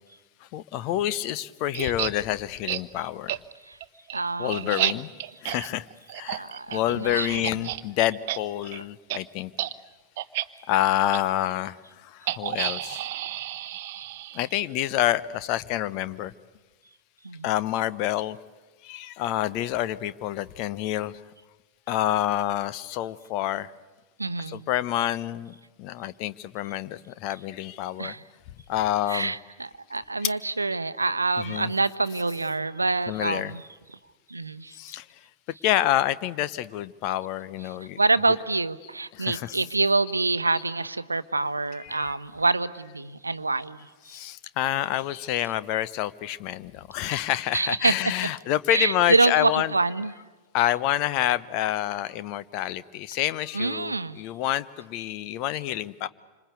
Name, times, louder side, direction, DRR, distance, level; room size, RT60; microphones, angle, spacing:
voice 1, 0.5-3.4 4.4-5.1 5.4-5.9 6.1-6.4 6.7-9.5 10.7-13.0 14.3-16.3 17.4-18.4 18.8-21.2 21.9-23.7 24.4-25.5 25.8-28.2 28.7-29.3 30.2-30.3 31.4-31.7 32.1-32.2 33.1-33.5 34.7-35.1 35.6-38.4 39.1-39.7 41.7-42.2 44.0-49.9 50.5-56.1, left 13 dB, 45° left, 16 dB, 0.8 m, -28 dB
sound 1, 1.7-2.1 2.7-2.8 3.3-3.4 3.8-7.8 8.1-8.4 8.6-8.8 9.1-9.2 9.5-9.7 10.2-10.5 11.1-11.2 12.3-14.6, right 14 dB, 50° right, 0.8 m, -31 dB
voice 2, 4.1-4.9 6.3-7.7 13.7-14.1 17.2-17.5 24.2-24.7 28.0-28.2 29.1-33.6 34.3-34.8 38.0-43.9 47.5-48.0 48.7-50.1 53.5-54.2, right 3 dB, 80° right, 14 dB, 0.8 m, -26 dB
27.0 x 26.0 x 8.3 m, 1.3 s
figure-of-eight pair, 90°, 0 cm